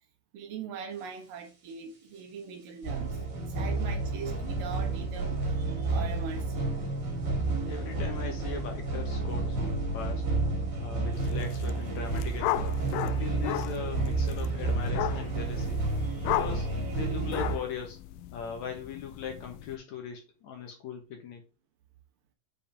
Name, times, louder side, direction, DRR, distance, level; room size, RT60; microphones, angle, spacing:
voice 1, 0.3-6.8, right 6 dB, 70° right, 2.9 m, -41 dB
sound 1, 2.8-17.6, right 3 dB, 35° right, 2.3 m, -31 dB
voice 2, 7.7-10.3 10.8-12.6 13.0-15.8 16.2-18.0 18.3-21.4, left 6 dB, 60° left, 2.2 m, -39 dB
sound 2, 11.3-11.7 12.0-19.8, left 14 dB, 80° left, 2.0 m, -35 dB
7.0 x 5.0 x 3.4 m
omnidirectional pair, 4.2 m